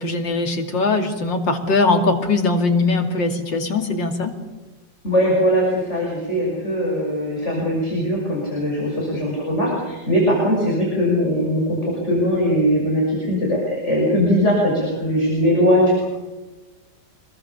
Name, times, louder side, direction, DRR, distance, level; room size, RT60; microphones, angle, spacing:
voice 1, 0.0-4.3, left 3 dB, 75° left, 4 dB, 3.3 m, -20 dB
voice 2, 5.0-16.1, equal, 35° left, -3 dB, 6.6 m, -20 dB
26.0 x 22.0 x 7.0 m, 1.2 s
omnidirectional pair, 2.0 m